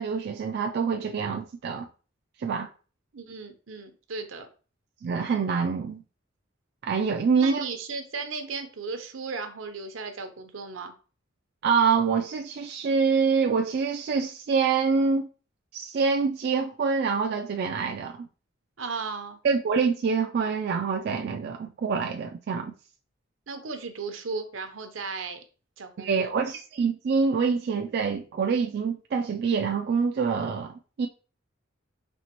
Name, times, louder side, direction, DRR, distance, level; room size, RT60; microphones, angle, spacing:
voice 1, 0.0-1.9 2.4-2.7 5.0-6.0 6.8-7.6 11.6-15.3 15.7-18.3 19.4-22.7 26.0-31.1, right 5 dB, 55° right, 0.3 m, -26 dB
voice 2, 3.1-4.5 7.4-10.9 18.8-19.4 23.5-25.4 25.8-26.3, right 4 dB, 85° right, 0.8 m, -35 dB
4.3 x 2.9 x 2.9 m
head